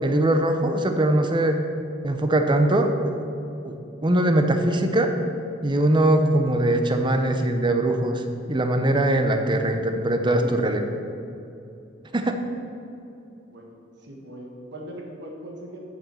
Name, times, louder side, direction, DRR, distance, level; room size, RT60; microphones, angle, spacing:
voice 1, 0.0-1.6 2.0-3.2 3.6-3.8 4.0-5.1 5.6-10.8 12.1-12.3, right 1 dB, 25° right, 6 dB, 0.7 m, -21 dB
voice 2, 10.1-10.5 13.5-13.6 14.0-15.8, right 1 dB, 60° right, -1 dB, 1.4 m, -39 dB
7.2 x 6.1 x 6.8 m, 2.8 s
head